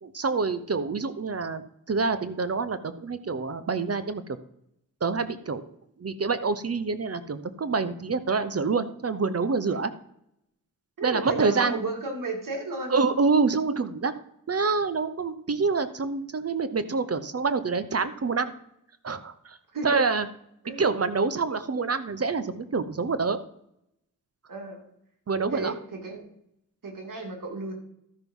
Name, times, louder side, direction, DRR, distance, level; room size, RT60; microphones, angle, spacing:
voice 1, 0.0-4.2 5.0-5.6 6.0-9.9 11.0-11.8 12.9-14.1 14.5-18.5 19.0-19.6 19.8-20.3 20.8-23.4 25.3-25.7, right 4 dB, 45° right, 12 dB, 0.9 m, -26 dB
voice 2, 11.0-13.0 19.7-19.9 20.6-20.8 24.5-24.9 25.5-26.2 26.8-27.7, right 3 dB, 75° right, 2 dB, 2.6 m, -33 dB
13.0 x 6.0 x 5.4 m, 0.76 s
cardioid pair, 60°, 32 cm